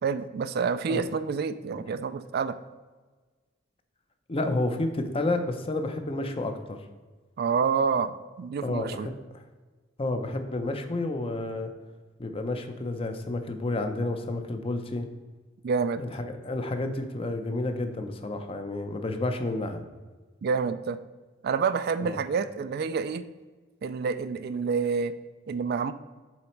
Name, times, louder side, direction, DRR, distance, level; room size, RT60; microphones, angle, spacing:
voice 1, 0.0-2.6 7.4-9.1 15.6-16.0 20.4-21.0 21.4-23.2 23.8-25.1 25.5-25.9, right 5 dB, 55° right, 12 dB, 0.3 m, -28 dB
voice 2, 4.3-6.8 8.6-9.4 10.0-11.7 12.2-15.1 16.0-19.8 22.0-22.2, left 2 dB, 30° left, 6 dB, 0.6 m, -30 dB
7.2 x 4.0 x 4.5 m, 1.3 s
head